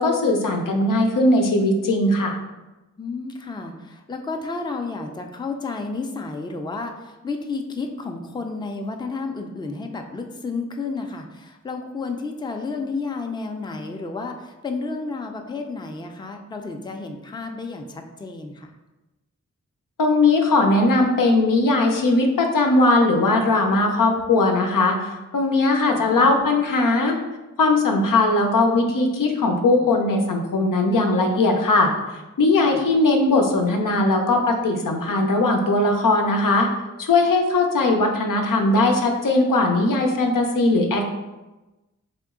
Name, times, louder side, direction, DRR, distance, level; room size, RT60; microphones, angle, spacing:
voice 1, 0.0-2.4 20.0-27.1 27.6-36.7 37.0-41.1, left 2 dB, 85° left, 2 dB, 0.6 m, -19 dB
voice 2, 3.0-18.7 25.9-26.4 32.6-32.8, left 3 dB, 15° left, 4 dB, 0.4 m, -31 dB
3.6 x 3.0 x 3.6 m, 1.1 s
wide cardioid pair, 65°, 32 cm